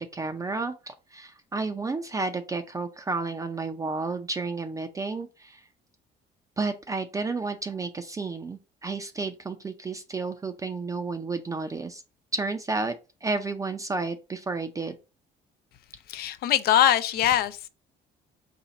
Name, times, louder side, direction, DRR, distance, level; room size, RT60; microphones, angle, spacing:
voice 1, 0.0-5.6 6.6-12.0 12.3-12.9 13.2-14.9, right 3 dB, 20° right, 0.4 m, -31 dB
voice 2, 16.1-17.7, left 11 dB, 65° left, 0.5 m, -22 dB
4.3 x 2.3 x 3.8 m
cardioid pair, 110°, 17 cm